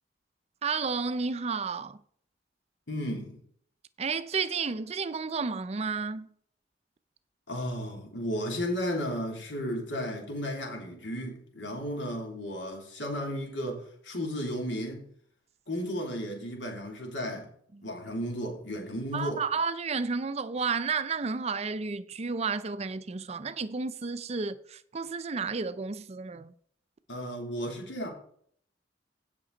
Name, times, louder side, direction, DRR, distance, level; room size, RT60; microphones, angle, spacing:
voice 1, 0.6-2.0 4.0-6.3 17.7-17.9 19.1-26.5, right 5 dB, 35° right, 0.5 m, -32 dB
voice 2, 2.9-3.4 7.5-15.1 15.7-17.5 17.8-19.4 27.1-28.1, equal, 90° left, 3.0 m, -34 dB
16.0 x 5.9 x 3.9 m
head